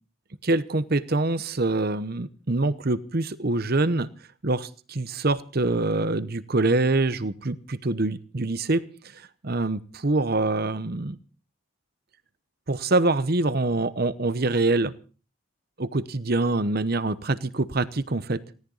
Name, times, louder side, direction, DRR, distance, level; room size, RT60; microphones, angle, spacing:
voice 1, 0.4-4.1 4.4-8.8 9.1-11.2 12.7-14.9 15.8-18.4, right 2 dB, 45° right, 15 dB, 0.9 m, -25 dB
19.0 x 17.5 x 4.0 m, 0.37 s
head